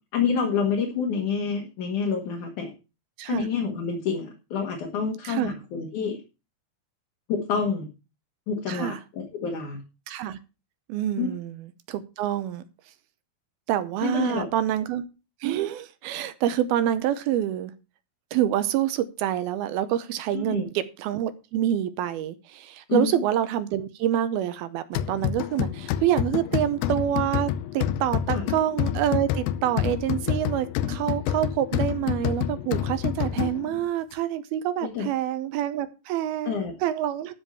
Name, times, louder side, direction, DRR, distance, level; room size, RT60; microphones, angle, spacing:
voice 1, 0.1-2.7 3.2-6.2 7.3-7.9 8.5-9.8 11.2-11.3 14.0-14.5 20.3-20.7 22.9-23.2 28.3-28.5 34.8-35.1 36.4-36.7, left 6 dB, 55° left, 2.8 m, -28 dB
voice 2, 8.7-9.0 10.1-10.4 10.9-11.6 11.9-12.6 13.7-15.1 15.4-17.7 18.3-37.3, right 11 dB, 75° right, 2.5 m, -27 dB
sound 1, 25.0-33.8, left 11 dB, 80° left, 2.1 m, -28 dB
13.0 x 5.1 x 7.0 m
omnidirectional pair, 4.8 m